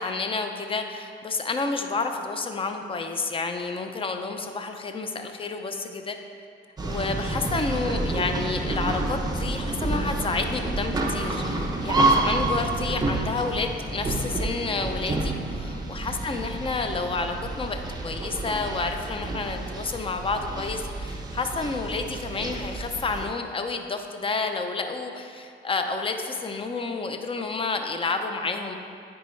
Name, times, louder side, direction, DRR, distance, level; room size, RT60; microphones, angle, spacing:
voice 1, 0.0-6.2 6.8-28.8, left 3 dB, 25° left, 6 dB, 0.6 m, -30 dB
sound 1, 6.8-23.3, right 2 dB, 20° right, 0.8 m, -29 dB
9.2 x 4.7 x 3.2 m, 2.4 s
cardioid pair, 90°, 20 cm